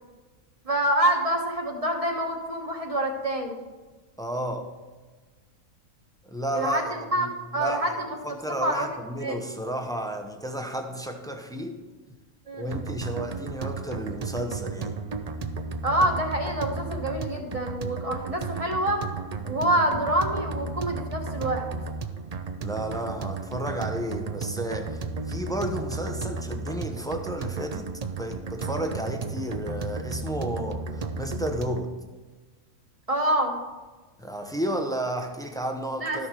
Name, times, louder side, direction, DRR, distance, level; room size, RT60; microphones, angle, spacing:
voice 1, 0.6-3.6 6.5-8.1 8.6-8.9 9.2-9.4 12.5-12.8 15.8-19.0 19.4-21.7 33.1-33.6 36.0-36.3, right 1 dB, 25° right, 2 dB, 1.3 m, -26 dB
voice 2, 4.2-4.7 6.3-8.0 8.2-11.8 12.6-15.0 22.6-27.9 28.2-32.0 34.2-36.3, right 1 dB, 5° left, 4 dB, 0.6 m, -32 dB
sound 1, 12.7-31.9, right 4 dB, 55° right, 0.4 m, -34 dB
12.5 x 6.4 x 4.5 m, 1.3 s
omnidirectional pair, 1.5 m